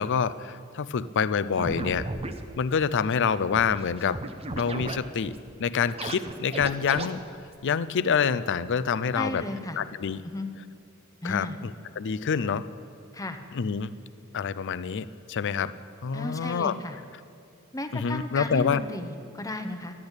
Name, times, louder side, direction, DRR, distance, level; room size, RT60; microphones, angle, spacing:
voice 1, 0.0-2.1 2.6-4.2 4.5-5.3 5.6-7.2 7.6-9.4 9.8-10.2 11.2-12.7 13.5-14.0 14.3-15.7 16.0-16.8 17.9-18.8, left 6 dB, 55° left, 15 dB, 0.4 m, -27 dB
sound 1, 1.6-2.3 2.9-3.0 3.1-3.2 3.4-5.0 5.3-5.5 5.8-7.1, right 2 dB, 30° right, 0.7 m, -34 dB
voice 2, 9.1-9.8 10.2-10.5 11.2-11.6 13.1-13.4 16.1-17.0 17.7-19.9, left 1 dB, 15° left, 7 dB, 0.8 m, -34 dB
12.0 x 10.5 x 8.1 m, 2.4 s
head